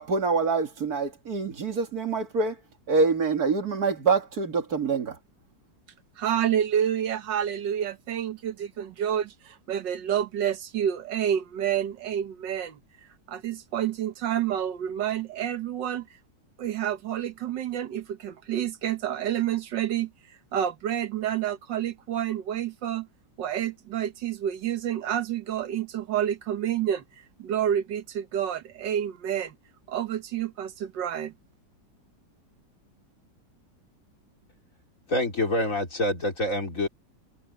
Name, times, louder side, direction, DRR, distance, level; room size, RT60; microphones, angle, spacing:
voice 1, 0.0-2.6 2.9-5.2, right 4 dB, 55° right, 2.6 m, -25 dB
voice 2, 6.2-12.8 13.3-16.1 16.6-20.1 20.5-23.1 23.4-27.0 27.4-29.6 29.9-31.3, right 10 dB, 85° right, 1.8 m, -29 dB
voice 3, 35.1-36.9, left 1 dB, 45° left, 3.7 m, -26 dB
omnidirectional pair, 1.9 m